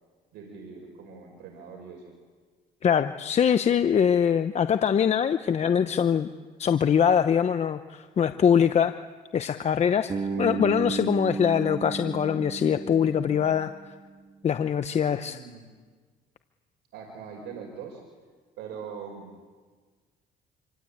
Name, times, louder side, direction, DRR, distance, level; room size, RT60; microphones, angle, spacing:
voice 1, 0.3-2.1 10.1-10.5 15.2-15.7 16.9-18.0 18.6-19.3, right 6 dB, 80° right, 2 dB, 5.4 m, -42 dB
voice 2, 2.8-6.3 6.6-8.9 9.3-10.1 10.4-13.7 14.4-15.4, left 8 dB, 40° left, 9 dB, 0.9 m, -23 dB
Bass guitar, 10.1-14.0, right 4 dB, 30° right, 1.9 m, -33 dB
27.0 x 24.5 x 8.8 m, 1.5 s
cardioid pair, 110°, 17 cm